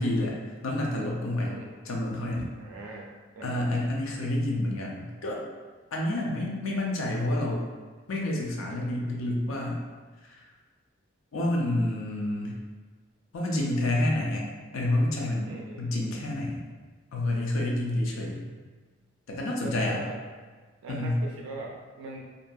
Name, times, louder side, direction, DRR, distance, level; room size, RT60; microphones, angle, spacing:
voice 1, 0.0-1.6 1.9-2.5 3.4-5.5 5.9-7.6 8.1-9.8 10.2-10.4 11.3-12.6 13.3-14.5 14.7-16.6 17.1-18.5 19.3-20.0 20.9-21.2, left 1 dB, 90° left, -1 dB, 0.5 m, -29 dB
voice 2, 2.6-3.6 15.5-15.9 19.6-20.2 20.8-22.2, right 2 dB, 75° right, -1 dB, 0.3 m, -41 dB
2.6 x 2.5 x 2.2 m, 1.4 s
head